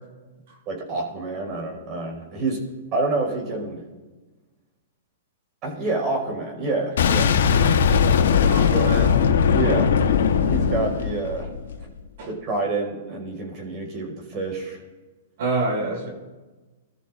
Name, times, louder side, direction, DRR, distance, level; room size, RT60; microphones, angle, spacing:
voice 1, 0.7-3.8 5.6-7.4 9.5-10.0 10.5-11.5 12.2-14.8, right 3 dB, 35° right, 0 dB, 5.4 m, -28 dB
Boom, 7.0-11.8, left 7 dB, 75° left, 1.2 m, -19 dB
voice 2, 8.4-9.3 12.2-12.3 15.4-16.1, right 2 dB, 60° right, -2 dB, 6.0 m, -26 dB
25.5 x 13.5 x 2.6 m, 1.3 s
hypercardioid pair, 125°, 0 cm